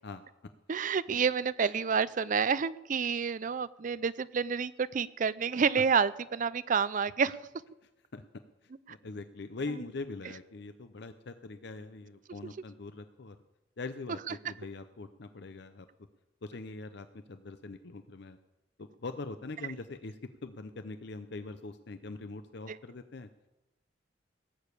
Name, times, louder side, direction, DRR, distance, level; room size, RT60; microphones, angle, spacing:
voice 1, 0.7-7.4 22.7-22.8, right 6 dB, 40° right, 17 dB, 0.4 m, -29 dB
voice 2, 8.6-13.4 13.8-15.9 16.4-18.4 18.8-23.3, left 3 dB, 60° left, 10 dB, 0.6 m, -42 dB
17.5 x 7.1 x 8.3 m, 0.99 s
head